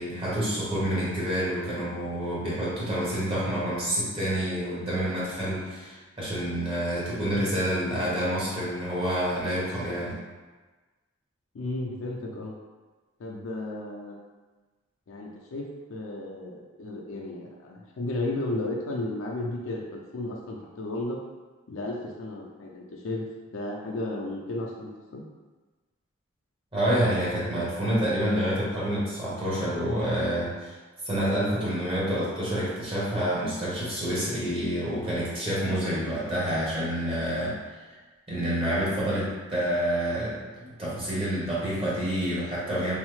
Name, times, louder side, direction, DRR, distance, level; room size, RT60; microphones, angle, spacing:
voice 1, 0.0-10.1 26.7-30.7 31.1-37.5 38.3-40.3 40.6-43.0, equal, 25° right, -8 dB, 0.8 m, -28 dB
voice 2, 11.5-12.5 13.2-14.2 15.1-21.2 21.7-23.3 23.5-25.2, left 2 dB, 65° left, -2 dB, 0.4 m, -34 dB
3.1 x 2.0 x 3.1 m, 1.3 s
head